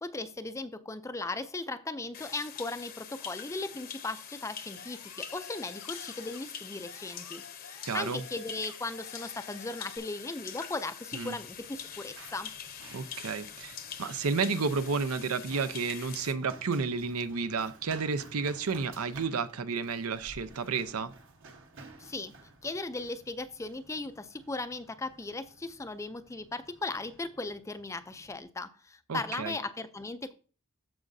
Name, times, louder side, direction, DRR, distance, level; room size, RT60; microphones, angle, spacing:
voice 1, 0.0-12.5 22.0-22.3 22.6-30.3, left 3 dB, 15° left, 11 dB, 0.4 m, -37 dB
sound 1, 2.1-16.3, left 8 dB, 45° left, 0.8 m, -44 dB
sound 2, 4.8-6.6 6.8-10.0, left 5 dB, 90° left, 1.5 m, -51 dB
voice 2, 7.8-8.2 11.1-11.4 12.9-21.1 29.1-29.5, right 4 dB, 75° right, 13 dB, 0.6 m, -31 dB
Run, 11.1-28.4, right 3 dB, 60° right, 1.2 m, -54 dB
14.0 x 4.9 x 2.6 m, 0.38 s
head